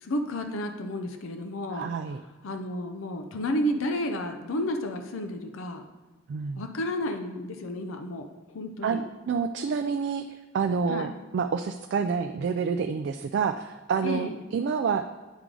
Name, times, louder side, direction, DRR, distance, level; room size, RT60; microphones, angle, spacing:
voice 1, 0.0-1.9 2.4-5.8 6.6-9.0 10.9-11.1 14.0-14.4, left 1 dB, 85° left, 5 dB, 0.6 m, -31 dB
voice 2, 1.7-2.2 6.3-6.6 8.8-10.2 10.5-15.0, right 6 dB, 60° right, 7 dB, 0.3 m, -28 dB
9.2 x 4.7 x 3.8 m, 1.2 s
head